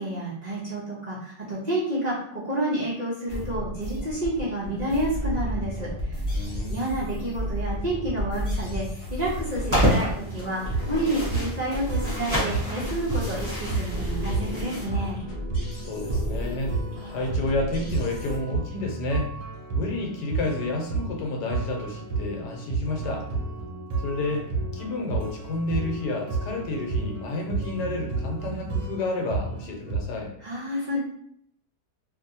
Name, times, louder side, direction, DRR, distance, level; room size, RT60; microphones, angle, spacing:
voice 1, 0.0-2.1 2.4-6.2 6.7-15.2 30.4-31.0, right 1 dB, 55° right, -8 dB, 0.4 m, -29 dB
sound 1, 3.3-18.4, equal, 40° left, 1.0 m, -33 dB
voice 2, 6.3-6.9 15.7-16.8 17.1-19.3 19.7-23.3 24.0-30.3, left 2 dB, 75° left, 1 dB, 1.3 m, -30 dB
sound 2, 9.2-14.9, equal, 25° right, 1.2 m, -29 dB
sound 3, 10.2-30.0, right 3 dB, 70° right, 1.0 m, -32 dB
2.7 x 2.7 x 2.7 m, 0.67 s
omnidirectional pair, 1.8 m